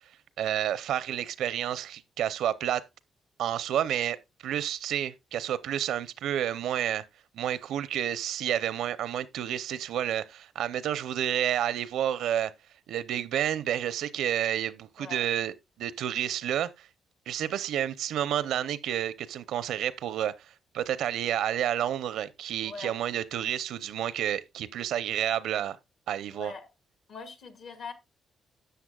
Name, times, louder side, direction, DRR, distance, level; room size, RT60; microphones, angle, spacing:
voice 1, 0.4-2.8 3.4-4.2 4.4-7.0 7.3-12.5 12.9-16.9 17.3-25.8 26.1-26.5, right 10 dB, 85° right, 0.6 m, -30 dB
voice 2, 22.6-22.9 26.3-26.7 27.1-27.9, left 4 dB, 65° left, 1.9 m, -42 dB
12.5 x 7.9 x 2.3 m
cardioid pair, 120°, 0 cm